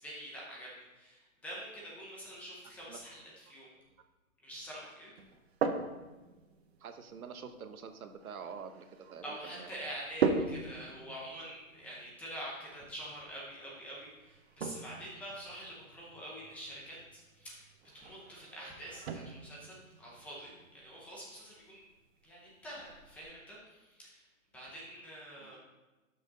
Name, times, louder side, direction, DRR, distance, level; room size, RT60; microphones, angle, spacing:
voice 1, 0.0-3.7 4.4-5.1 9.2-17.7 17.9-21.9 22.2-24.2 24.5-25.6, right 1 dB, 5° left, -5 dB, 0.7 m, -46 dB
sound 1, 5.2-23.2, right 5 dB, 50° right, 1.0 m, -41 dB
voice 2, 6.8-8.8 9.1-9.7 25.4-25.6, right 6 dB, 90° right, 7 dB, 1.3 m, -46 dB
12.5 x 6.2 x 4.0 m, 1.1 s
hypercardioid pair, 170°, 42 cm